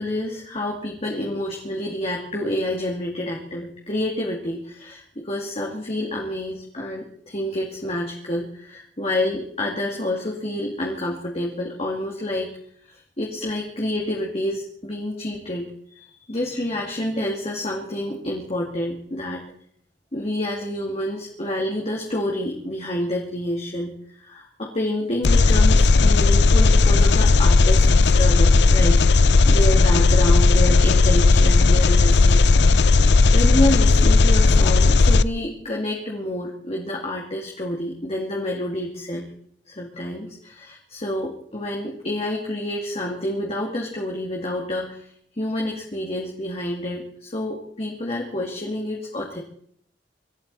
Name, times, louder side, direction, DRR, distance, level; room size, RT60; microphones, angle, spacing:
voice 1, 0.0-12.6 12.9-19.4 20.1-23.9 24.2-32.6 33.0-39.3 39.7-45.1 45.4-49.4, left 1 dB, 35° left, -2 dB, 2.5 m, -28 dB
Engine, 25.2-35.2, left 3 dB, 70° left, 0.5 m, -15 dB
25.5 x 13.0 x 4.2 m, 0.63 s
head